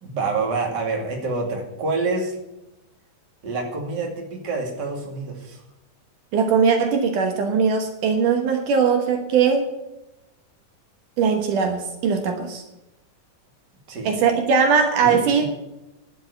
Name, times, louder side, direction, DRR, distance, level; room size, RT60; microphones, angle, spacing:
voice 1, 0.0-2.4 3.4-5.6 13.9-14.1 15.0-15.4, right 3 dB, 35° right, 1 dB, 2.7 m, -27 dB
voice 2, 6.3-9.7 11.2-12.6 14.0-15.4, right 6 dB, 75° right, 4 dB, 2.7 m, -20 dB
12.0 x 7.0 x 9.8 m, 0.93 s
omnidirectional pair, 3.8 m